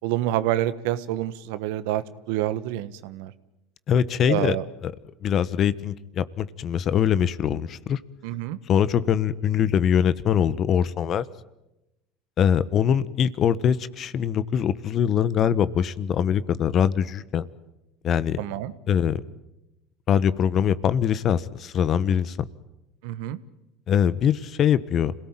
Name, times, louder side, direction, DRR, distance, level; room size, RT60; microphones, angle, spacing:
voice 1, 0.0-3.3 4.3-4.6 8.2-8.6 18.4-18.7 23.0-23.4, right 13 dB, 75° right, 15 dB, 1.3 m, -27 dB
voice 2, 3.9-4.6 4.8-4.9 5.2-8.0 8.7-11.2 12.4-17.5 18.0-18.4 18.9-19.2 20.1-22.4 23.9-25.1, left 8 dB, 45° left, 16 dB, 1.2 m, -23 dB
27.5 x 18.0 x 9.0 m, 0.94 s
supercardioid pair, 95°, 0 cm